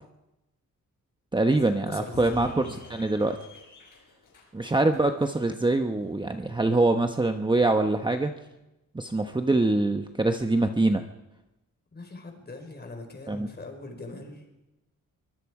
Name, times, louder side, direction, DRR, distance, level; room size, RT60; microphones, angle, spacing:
voice 1, 1.3-3.4 4.5-8.3 8.9-11.0 13.3-13.5, right 2 dB, 15° right, 6 dB, 1.0 m, -24 dB
voice 2, 1.9-2.7 11.9-14.5, left 2 dB, 30° left, 4 dB, 4.6 m, -41 dB
sound 1, 2.1-7.2, left 4 dB, 65° left, 6.6 m, -49 dB
24.0 x 22.0 x 4.9 m, 0.97 s
wide cardioid pair, 125°, 34 cm